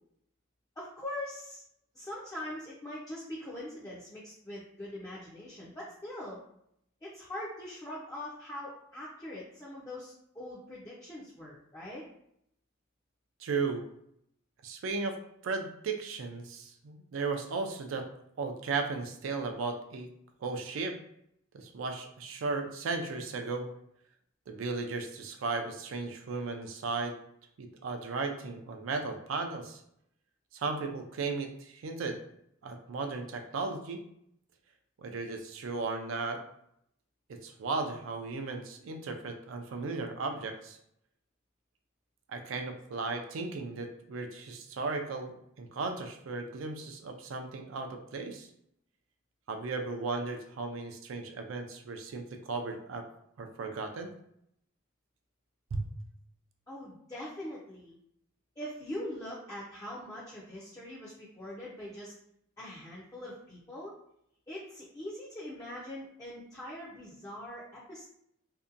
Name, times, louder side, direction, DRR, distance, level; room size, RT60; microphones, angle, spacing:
voice 1, 0.8-1.6 1.9-6.4 7.0-12.0 56.7-57.9 58.6-62.1 62.6-64.0 64.5-68.1, left 1 dB, 15° left, -7 dB, 0.4 m, -42 dB
voice 2, 13.4-13.8 14.6-15.2 15.4-18.0 18.4-20.1 20.4-21.0 21.5-23.7 24.5-27.2 27.6-29.8 30.5-32.2 32.6-34.0 35.0-36.4 37.3-40.8 42.3-48.5 49.5-53.0 53.4-54.1 55.7-55.8, right 4 dB, 75° right, 5 dB, 0.4 m, -35 dB
2.7 x 2.1 x 2.4 m, 0.73 s
head